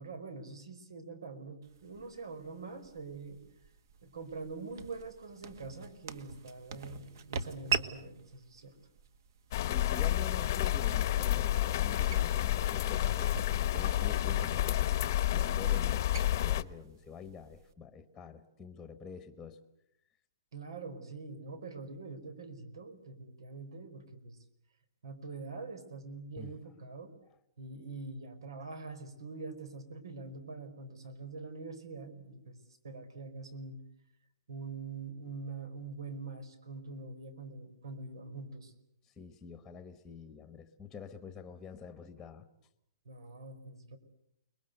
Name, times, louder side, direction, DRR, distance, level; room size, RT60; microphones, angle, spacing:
voice 1, 0.0-3.4 4.0-8.7 20.5-24.4 25.0-27.1 27.6-32.6 32.8-33.8 34.5-38.7 43.0-44.0, right 3 dB, 90° right, 13 dB, 5.0 m, -44 dB
sound 1, 1.6-17.7, right 6 dB, 55° right, 1.7 m, -43 dB
sound 2, 9.5-16.6, left 13 dB, 45° left, 0.9 m, -30 dB
voice 2, 9.7-13.4 13.7-14.8 15.3-19.6 26.4-26.5 39.2-42.4, left 5 dB, 5° left, 10 dB, 1.2 m, -46 dB
29.5 x 21.5 x 8.0 m, 0.77 s
hypercardioid pair, 165°, 2 cm